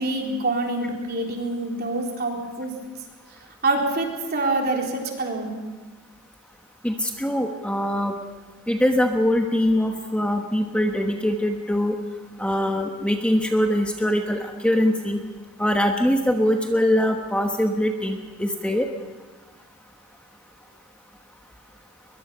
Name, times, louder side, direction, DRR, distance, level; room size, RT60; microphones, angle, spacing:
voice 1, 0.0-2.7 3.6-5.6, right 2 dB, 45° right, 0 dB, 3.8 m, -26 dB
voice 2, 6.8-8.1 8.7-12.0 12.4-15.2 15.6-18.9, left 1 dB, 5° left, 3 dB, 1.1 m, -22 dB
22.0 x 22.0 x 5.6 m, 1.3 s
head